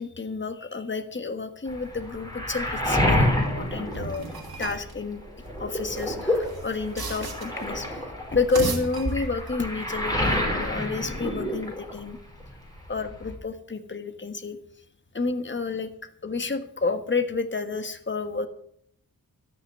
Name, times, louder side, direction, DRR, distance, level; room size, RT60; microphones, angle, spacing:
voice 1, 0.0-4.3 4.6-5.2 5.6-8.0 8.3-12.2 12.9-14.6 15.1-15.9 16.2-18.5, left 4 dB, 30° left, 8 dB, 1.4 m, -30 dB
Waves surf, 1.7-4.9 5.2-12.1 12.4-13.3, left 1 dB, 10° left, 4.8 m, -28 dB
sound 1, 3.9-4.9 5.8-7.7 8.3-9.6, right 3 dB, 80° right, 2.9 m, -34 dB
13.5 x 6.2 x 9.4 m, 0.69 s
wide cardioid pair, 70°, 36 cm